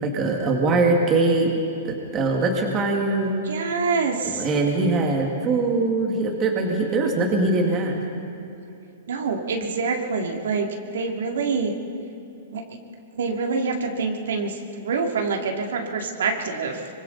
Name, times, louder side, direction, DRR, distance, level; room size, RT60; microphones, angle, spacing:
voice 1, 0.0-1.5 1.8-3.4 4.2-8.0, right 3 dB, 20° right, 1 dB, 2.0 m, -22 dB
voice 2, 3.5-4.5 9.1-10.7 10.9-11.7 12.5-12.6 13.1-16.9, right 4 dB, 80° right, 2 dB, 2.8 m, -26 dB
26.0 x 24.5 x 4.1 m, 2.8 s
hypercardioid pair, 170°, 0 cm